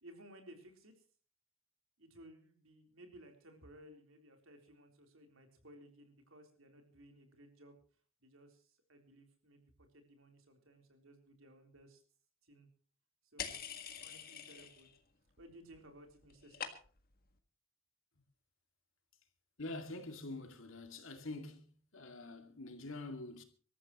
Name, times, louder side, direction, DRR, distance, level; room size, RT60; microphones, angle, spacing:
voice 1, 0.0-1.0 2.0-7.8 8.2-12.0 12.4-12.7 13.3-14.9 15.4-16.7, right 1 dB, 75° right, 3.8 m, -59 dB
sound 1, 13.4-15.0 15.3-15.8 16.1-17.1, left 7 dB, 45° left, 1.7 m, -45 dB
voice 2, 19.6-23.4, left 2 dB, 70° left, 2.3 m, -46 dB
25.0 x 13.5 x 3.0 m
head